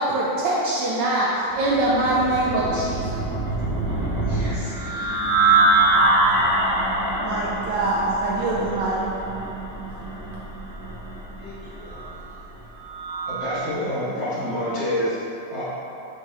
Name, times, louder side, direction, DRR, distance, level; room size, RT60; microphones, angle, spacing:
voice 1, 0.0-3.2 7.2-9.0, right 1 dB, 75° right, -5 dB, 1.0 m, -23 dB
sound 1, 1.6-13.5, right 2 dB, 5° right, 0.7 m, -24 dB
voice 2, 2.6-3.1 4.0-5.4 11.4-12.4, left 1 dB, 70° left, -8 dB, 0.9 m, -41 dB
voice 3, 13.3-15.2 15.5-15.6, equal, 50° left, -10 dB, 1.3 m, -26 dB
6.1 x 3.4 x 2.6 m, 2.8 s
omnidirectional pair, 2.3 m